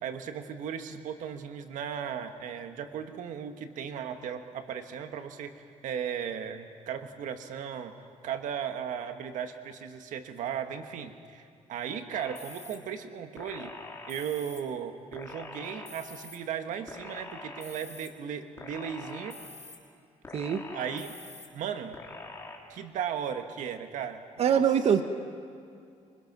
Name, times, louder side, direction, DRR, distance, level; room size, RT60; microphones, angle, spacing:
voice 1, 0.0-7.9 8.2-13.7 14.1-19.4 20.7-21.1 21.5-22.0 22.7-24.2 24.5-24.6, right 8 dB, 85° right, 7 dB, 1.5 m, -36 dB
sound 1, 12.1-12.8 13.4-14.6 15.1-16.4 16.9-18.1 18.6-19.8 20.2-21.5 21.9-22.6, left 3 dB, 20° left, 3.0 m, -44 dB
voice 2, 20.3-20.6 24.4-25.0, right 8 dB, 55° right, 8 dB, 1.0 m, -23 dB
24.5 x 24.0 x 6.1 m, 2.4 s
cardioid pair, 120°, 13 cm